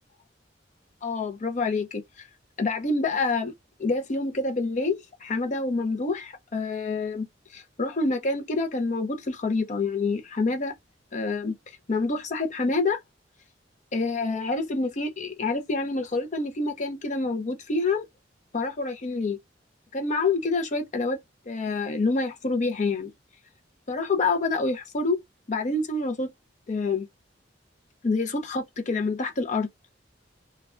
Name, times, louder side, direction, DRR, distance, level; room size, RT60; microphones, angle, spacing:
voice 1, 1.0-2.0 2.6-3.5 3.8-7.3 7.5-10.7 11.1-11.5 11.9-13.0 13.9-18.1 18.5-19.4 19.9-21.2 21.5-23.1 23.9-25.2 25.5-26.3 26.7-27.1 28.0-29.7, left 3 dB, 40° left, 0.6 m, -27 dB
3.2 x 2.2 x 2.4 m
head